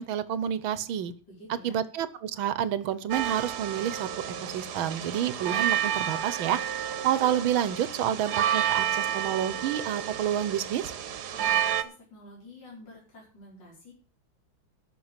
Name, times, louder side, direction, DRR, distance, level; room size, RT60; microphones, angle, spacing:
voice 1, 0.0-1.1 1.6-4.1 4.4-6.6 7.0-10.9, right 10 dB, 90° right, 15 dB, 1.7 m, -29 dB
voice 2, 1.3-1.8 11.3-13.9, left 1 dB, 60° left, -4 dB, 5.3 m, -49 dB
sound 1, 3.1-11.8, right 10 dB, 60° right, 1.4 m, -30 dB
13.0 x 6.6 x 7.4 m, 0.38 s
omnidirectional pair, 2.2 m